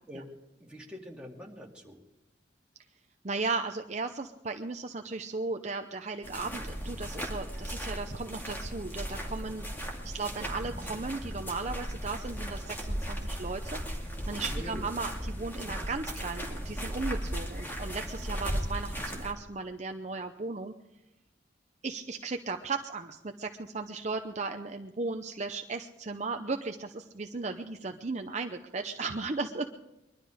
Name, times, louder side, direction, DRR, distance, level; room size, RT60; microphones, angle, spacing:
voice 1, 0.6-2.0 14.4-14.9, equal, 5° right, -3 dB, 2.4 m, -44 dB
voice 2, 3.2-9.7 10.0-20.7 21.8-29.7, right 3 dB, 40° right, 5 dB, 0.7 m, -36 dB
sound 1, 6.2-19.3, equal, 10° left, 2.3 m, -36 dB
22.0 x 12.5 x 5.0 m, 0.91 s
head